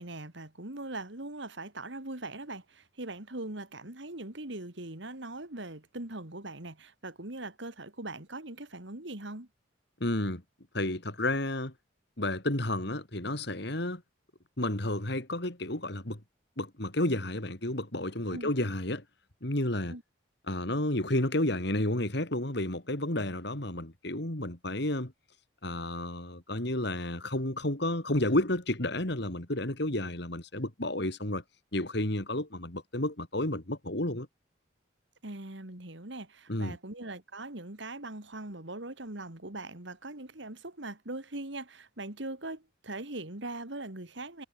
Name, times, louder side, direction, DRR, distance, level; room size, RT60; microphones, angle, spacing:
voice 1, 0.0-9.5 18.3-18.5 19.9-20.0 35.2-44.4, right 2 dB, 65° right, 2.6 m, -41 dB
voice 2, 10.0-10.4 10.7-11.7 12.2-14.0 14.6-16.2 16.6-19.0 19.4-19.9 20.5-25.1 25.6-31.4 31.7-34.3 36.5-36.8, left 1 dB, 55° left, 2.9 m, -31 dB
head